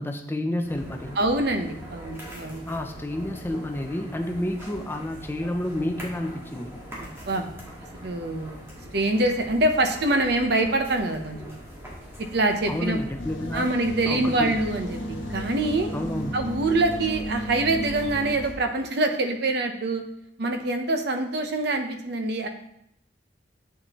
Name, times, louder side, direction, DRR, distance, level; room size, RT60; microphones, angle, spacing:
voice 1, 0.0-1.2 2.7-6.7 12.7-13.7 14.1-14.6 15.9-16.3, left 1 dB, 10° left, 5 dB, 0.5 m, -30 dB
sound 1, 0.6-18.5, equal, 15° right, 1.7 m, -42 dB
voice 2, 1.2-2.6 7.0-7.4 8.0-8.6 8.9-11.6 12.2-13.0 13.5-15.9 16.3-20.0 20.4-22.5, right 2 dB, 60° right, 6 dB, 0.8 m, -25 dB
sound 2, 13.2-18.4, equal, 80° left, 0.7 m, -34 dB
7.4 x 6.9 x 3.0 m, 0.75 s
head